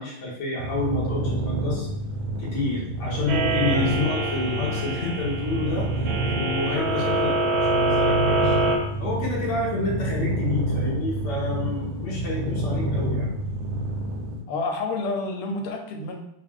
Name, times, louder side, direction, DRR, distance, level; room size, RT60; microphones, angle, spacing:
voice 1, 0.0-1.9 2.4-8.5 9.0-13.3, left 2 dB, 55° left, -6 dB, 0.8 m, -29 dB
sound 1, 0.6-14.4, right 1 dB, 85° right, 1.6 m, -28 dB
sound 2, 3.3-8.8, right 3 dB, 65° right, 1.1 m, -25 dB
voice 2, 14.5-16.2, left 3 dB, 90° left, 3 dB, 1.5 m, -29 dB
3.5 x 2.4 x 3.4 m, 0.76 s
omnidirectional pair, 2.3 m